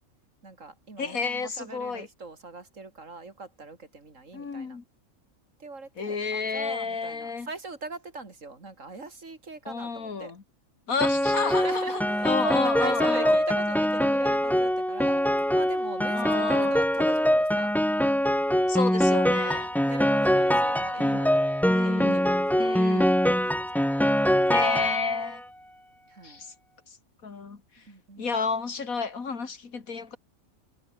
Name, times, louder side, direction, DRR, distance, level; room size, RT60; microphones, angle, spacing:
voice 1, 0.4-4.8 5.6-10.3 11.4-17.8 19.3-24.6 26.1-26.4 27.9-28.3, right 3 dB, 65° right, 3.9 m, -41 dB
voice 2, 1.0-2.1 4.3-4.8 6.0-7.5 9.7-10.4 10.9-13.4 16.1-16.8 18.7-19.7 21.0-21.2 21.7-22.3 22.6-23.1 24.5-25.4 26.2-26.5 27.2-27.8 28.2-30.2, left 5 dB, 85° left, 2.8 m, -31 dB
Piano, 11.0-25.4, equal, ahead, 0.4 m, -23 dB
omnidirectional pair, 1.4 m